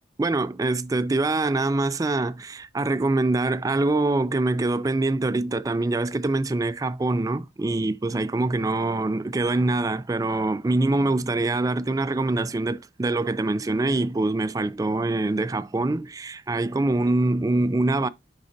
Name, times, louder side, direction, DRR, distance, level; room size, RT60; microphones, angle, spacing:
voice 1, 0.2-18.1, right 2 dB, 20° right, 0.3 m, -24 dB
10.0 x 4.0 x 2.6 m
head